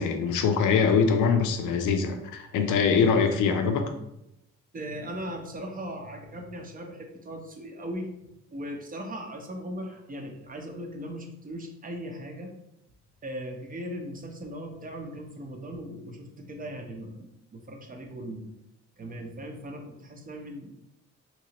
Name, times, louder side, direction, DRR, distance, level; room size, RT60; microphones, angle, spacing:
voice 1, 0.0-3.8, left 5 dB, 85° left, 6 dB, 0.5 m, -23 dB
voice 2, 4.7-12.5 13.2-18.5 19.0-20.8, equal, 30° right, 3 dB, 0.6 m, -38 dB
3.0 x 2.9 x 2.8 m, 0.83 s
cardioid pair, 90°, 30 cm